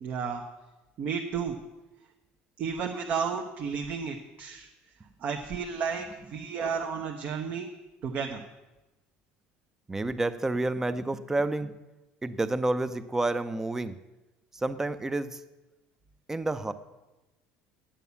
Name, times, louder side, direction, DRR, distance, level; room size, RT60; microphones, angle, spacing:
voice 1, 0.0-0.4 1.0-1.6 2.6-4.7 5.2-7.7 8.0-8.4, right 6 dB, 50° right, 2 dB, 1.0 m, -32 dB
voice 2, 9.9-11.7 12.2-14.0 14.5-15.4 16.3-16.7, right 2 dB, 10° right, 13 dB, 0.6 m, -29 dB
9.0 x 8.3 x 6.9 m, 1.0 s
supercardioid pair, 120°, 4 cm